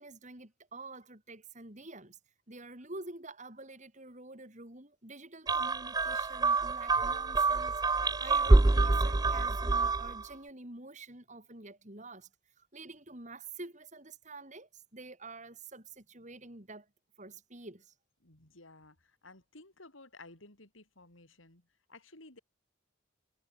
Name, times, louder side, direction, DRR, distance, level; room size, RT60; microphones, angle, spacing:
voice 1, 0.0-2.2 2.5-12.3 12.6-16.9 17.2-17.9, right 2 dB, 40° right, 4.9 m, -48 dB
sound 1, 5.5-10.2, right 3 dB, 20° right, 0.5 m, -26 dB
voice 2, 18.2-22.4, left 2 dB, 85° left, 5.7 m, -55 dB
head